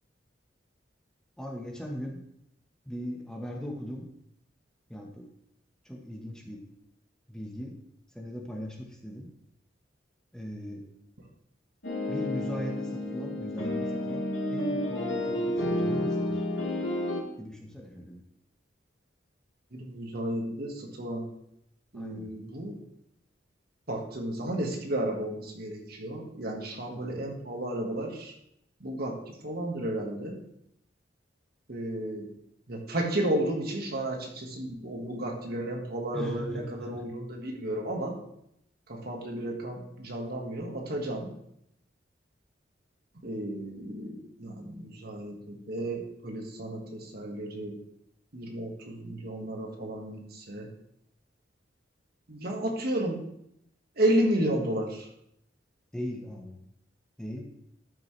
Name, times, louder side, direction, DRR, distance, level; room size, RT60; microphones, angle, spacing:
voice 1, 1.4-2.2 2.8-4.1 4.9-5.3 5.8-6.6 7.3-7.7 8.1-9.3 10.3-10.8 12.1-16.4 17.4-18.2 21.9-22.3 26.9-27.1 36.1-37.1 55.9-56.6 57.2-57.4, equal, 5° left, 0 dB, 1.2 m, -39 dB
sound 1, 11.8-17.2, left 1 dB, 80° left, 3.0 m, -30 dB
voice 2, 19.7-21.3 21.9-22.8 23.9-28.3 28.8-30.4 31.7-32.3 32.7-38.2 38.9-41.3 43.2-47.7 48.3-50.7 52.3-53.2 54.0-55.1, right 1 dB, 55° right, 1 dB, 1.6 m, -32 dB
13.0 x 5.8 x 3.3 m, 0.75 s
head